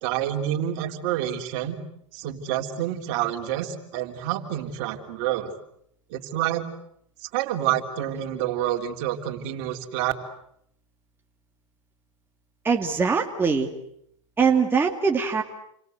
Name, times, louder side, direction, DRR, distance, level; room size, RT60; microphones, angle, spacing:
voice 1, 0.0-1.8 2.1-5.5 6.1-6.6 7.3-10.1, right 12 dB, 50° right, 4 dB, 3.6 m, -28 dB
voice 2, 12.6-13.7 14.4-15.4, right 5 dB, 15° right, 2 dB, 2.3 m, -22 dB
29.5 x 24.5 x 8.1 m, 0.74 s
hypercardioid pair, 120°, 17 cm